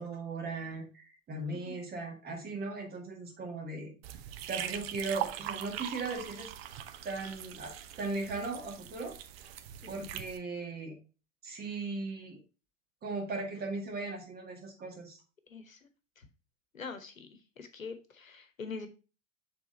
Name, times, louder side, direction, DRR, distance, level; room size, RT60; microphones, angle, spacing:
voice 1, 0.0-3.9 4.5-6.5 7.0-9.2 9.9-11.0 11.4-12.4 13.0-15.2, right 3 dB, 25° right, 1 dB, 2.0 m, -38 dB
sound 1, 4.0-10.4, right 11 dB, 50° right, 0.7 m, -41 dB
voice 2, 15.5-15.8 16.2-16.3 16.7-17.3 17.6-18.9, left 4 dB, 80° left, 9 dB, 1.0 m, -44 dB
6.9 x 3.8 x 3.9 m, 0.33 s
figure-of-eight pair, 85°, 39 cm